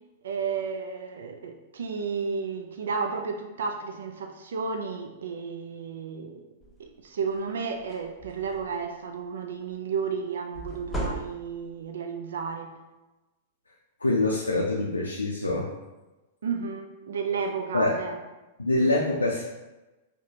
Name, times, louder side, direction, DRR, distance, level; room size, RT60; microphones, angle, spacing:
voice 1, 0.2-6.4 6.8-12.7 16.4-18.2, right 5 dB, 70° right, 4 dB, 0.3 m, -32 dB
sound 1, 6.6-6.9 7.3-7.5 7.8-8.9 10.5-11.8, right 1 dB, 10° left, 0.7 m, -36 dB
voice 2, 14.0-15.7 17.7-18.0 18.6-19.4, left 2 dB, 90° left, -2 dB, 0.4 m, -25 dB
4.8 x 2.1 x 2.8 m, 1.1 s
figure-of-eight pair, 100°, 0 cm